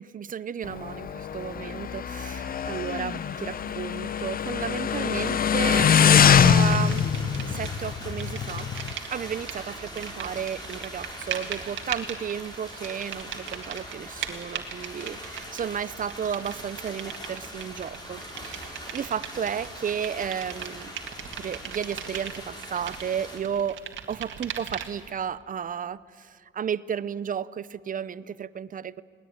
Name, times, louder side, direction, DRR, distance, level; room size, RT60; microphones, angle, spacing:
voice 1, 0.0-7.1 7.5-8.7 9.1-20.9 21.4-23.8 24.1-29.0, right 8 dB, 45° right, 17 dB, 0.6 m, -33 dB
Motorcycle, 0.6-8.9, left 8 dB, 45° left, 0.8 m, -23 dB
sound 1, 5.6-23.4, equal, 20° left, 6.0 m, -41 dB
sound 2, 6.4-7.8 8.1-25.1, right 9 dB, 70° right, 2.1 m, -39 dB
20.0 x 19.5 x 9.4 m, 2.1 s
cardioid pair, 90°, 20 cm